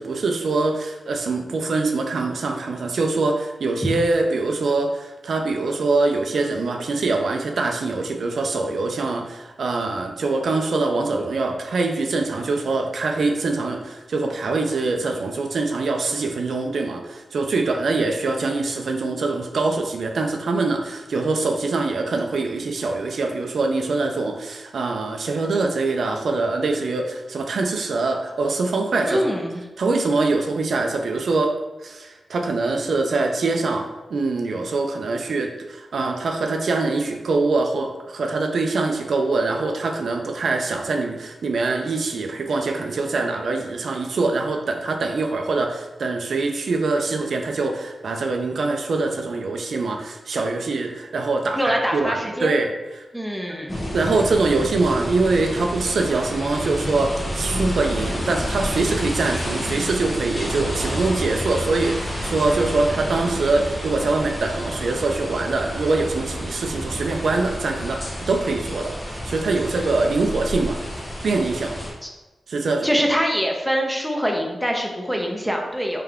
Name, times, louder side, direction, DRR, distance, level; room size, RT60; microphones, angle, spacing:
voice 1, 0.0-29.2 29.8-31.5 31.8-53.0 53.9-71.0 71.2-71.7 72.5-72.9, right 3 dB, 75° right, 3 dB, 0.4 m, -24 dB
voice 2, 29.1-29.6 51.6-52.5 53.1-53.8 72.0-72.1 72.8-76.0, equal, ahead, 0 dB, 0.8 m, -24 dB
sound 1, 53.7-71.9, equal, 35° left, 1.2 m, -29 dB
3.5 x 3.3 x 3.5 m, 1.1 s
cardioid pair, 55°, 0 cm